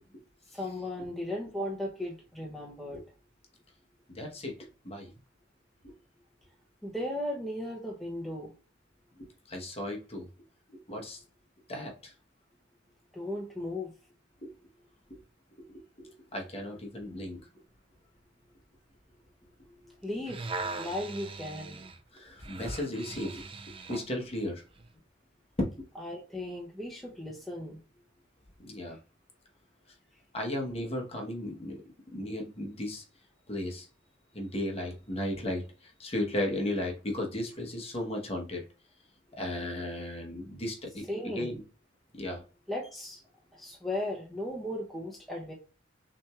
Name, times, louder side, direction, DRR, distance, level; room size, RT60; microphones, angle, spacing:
voice 1, 0.5-3.0 6.8-8.5 13.1-13.9 19.7-21.8 26.0-27.8 41.1-41.6 42.7-43.2 43.5-45.5, left 1 dB, ahead, -3 dB, 0.7 m, -36 dB
voice 2, 4.1-5.1 5.8-5.9 9.2-10.3 10.7-11.2 11.7-12.1 14.4-14.5 15.1-15.2 15.6-15.7 16.0-17.4 22.1-23.4 23.9-24.6 25.6-25.8 28.6-29.0 30.3-31.8 32.1-33.0 33.5-33.9 34.3-38.6 39.3-41.0 41.3-41.6 42.2-42.4, left 1 dB, 30° left, 1 dB, 1.0 m, -35 dB
sound 1, 20.0-24.1 24.8-24.9, right 3 dB, 25° right, 0.5 m, -40 dB
6.0 x 3.0 x 2.3 m, 0.36 s
head